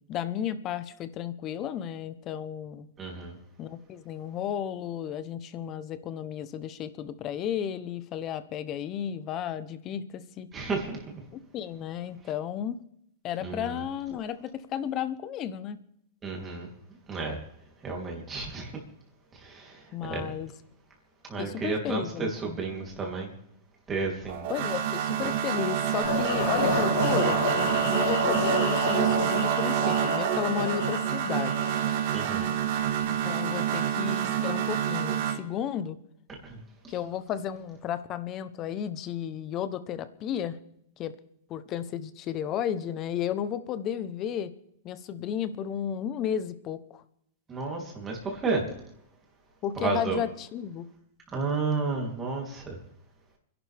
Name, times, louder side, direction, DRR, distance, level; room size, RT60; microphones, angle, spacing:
voice 1, 0.0-2.9 3.6-10.5 11.3-12.8 13.2-15.8 19.9-20.5 21.4-22.6 24.5-27.4 27.8-31.7 33.0-36.0 36.9-40.6 41.0-41.1 41.5-44.5 44.8-47.0 49.6-50.8, left 9 dB, 25° left, 14 dB, 0.8 m, -33 dB
voice 2, 3.0-3.3 10.5-11.0 13.4-13.8 16.2-16.7 17.1-17.4 17.8-18.7 19.4-20.3 21.3-23.3 23.9-24.5 25.2-25.3 32.1-32.5 36.5-36.6 47.5-48.6 49.8-50.2 51.3-52.8, right 4 dB, 15° right, -1 dB, 3.1 m, -32 dB
sound 1, 24.3-35.4, right 10 dB, 45° right, 1.6 m, -27 dB
sound 2, 26.0-32.0, left 4 dB, 55° left, 4.5 m, -30 dB
30.0 x 11.0 x 3.5 m, 0.75 s
supercardioid pair, 170°, 0 cm